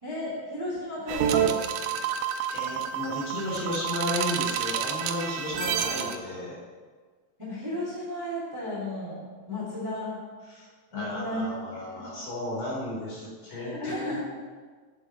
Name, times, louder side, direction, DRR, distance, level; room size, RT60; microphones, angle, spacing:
voice 1, 0.0-1.6 7.4-9.2 9.5-10.2 10.9-12.0 13.5-14.2, left 1 dB, 10° right, -6 dB, 1.3 m, -34 dB
sound 1, 1.1-6.2, right 8 dB, 85° right, 3.2 m, -29 dB
voice 2, 2.5-6.6 10.5-14.2, left 1 dB, 40° left, -7 dB, 4.2 m, -34 dB
8.1 x 7.7 x 6.6 m, 1.5 s
omnidirectional pair, 5.9 m